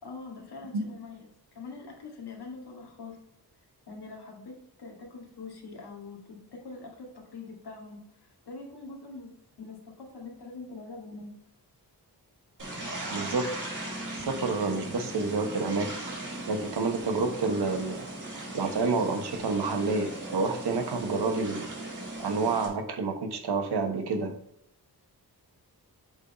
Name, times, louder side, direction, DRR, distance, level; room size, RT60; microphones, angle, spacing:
voice 1, 0.0-3.2 3.9-9.3 9.6-11.3, left 3 dB, 80° left, 0 dB, 2.2 m, -44 dB
sound 1, 12.6-22.7, right 1 dB, 50° right, 2.8 m, -38 dB
voice 2, 13.1-13.5 14.1-15.9 16.5-18.0 18.5-21.7 22.2-24.3, right 4 dB, 85° right, 5 dB, 1.2 m, -29 dB
7.9 x 4.0 x 4.3 m, 0.75 s
wide cardioid pair, 135°, 39 cm